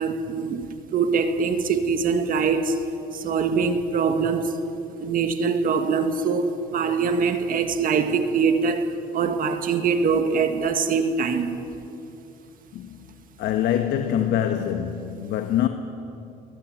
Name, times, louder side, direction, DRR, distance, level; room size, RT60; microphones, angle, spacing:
voice 1, 0.0-2.9 3.1-4.5 5.0-11.6, right 5 dB, 55° right, 1.8 m, -23 dB
voice 2, 13.4-15.7, left 10 dB, 80° left, 1.4 m, -24 dB
22.5 x 19.5 x 9.4 m
cardioid pair, 110°, 17 cm